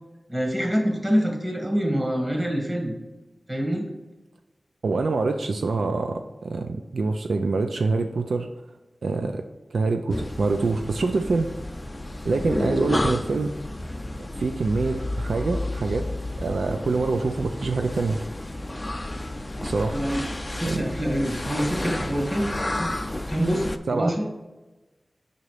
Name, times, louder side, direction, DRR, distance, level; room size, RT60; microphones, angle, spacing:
voice 1, 0.3-2.9 3.5-3.9 19.9-20.2 20.5-22.8 23.3-24.3, equal, 30° right, -1 dB, 2.1 m, -26 dB
voice 2, 4.8-8.5 9.0-9.4 9.7-11.5 12.2-13.5 14.3-16.1 16.4-18.2 19.6-20.0 20.6-20.8 23.9-24.1, right 3 dB, 85° right, 6 dB, 0.4 m, -25 dB
sound 1, 10.1-23.8, left 1 dB, 25° left, 0.5 m, -31 dB
5.5 x 3.9 x 4.9 m, 1.1 s
wide cardioid pair, 60°, 0 cm